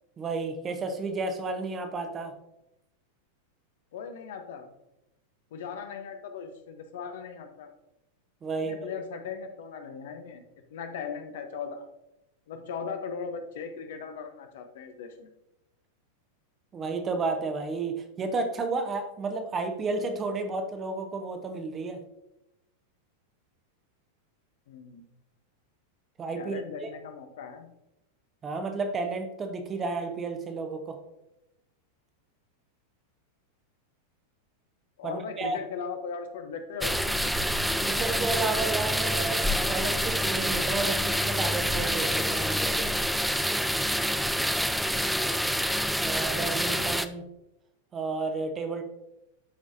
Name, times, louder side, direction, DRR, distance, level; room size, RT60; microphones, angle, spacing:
voice 1, 0.2-2.3 8.4-8.9 16.7-22.0 26.2-26.9 28.4-31.0 35.0-35.6 37.8-42.9 46.0-47.2 47.9-48.8, right 3 dB, 25° right, 6 dB, 1.0 m, -32 dB
voice 2, 3.9-4.7 5.5-7.7 8.6-10.4 10.7-11.8 12.5-15.3 24.7-25.1 26.4-27.7 35.0-37.0 45.1-45.6, left 6 dB, 55° left, 6 dB, 0.9 m, -38 dB
sound 1, 36.8-47.1, equal, ahead, 0.4 m, -27 dB
12.5 x 4.8 x 2.7 m, 0.88 s
figure-of-eight pair, 90°, 0 cm